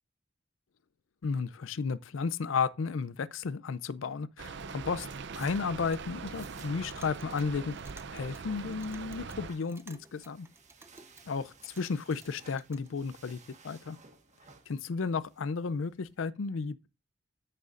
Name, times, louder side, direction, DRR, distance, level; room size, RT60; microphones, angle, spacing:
voice 1, 1.2-5.1 5.4-7.7 8.1-10.5 11.3-13.4 13.6-14.0 14.7-16.9, left 5 dB, 80° left, 0.5 m, -33 dB
Rain, 4.4-9.5, right 5 dB, 65° right, 0.6 m, -42 dB
sound 1, 4.9-16.2, right 4 dB, 40° right, 1.5 m, -59 dB
Clock, 5.2-12.9, right 2 dB, 15° right, 0.6 m, -57 dB
13.5 x 6.6 x 2.5 m
head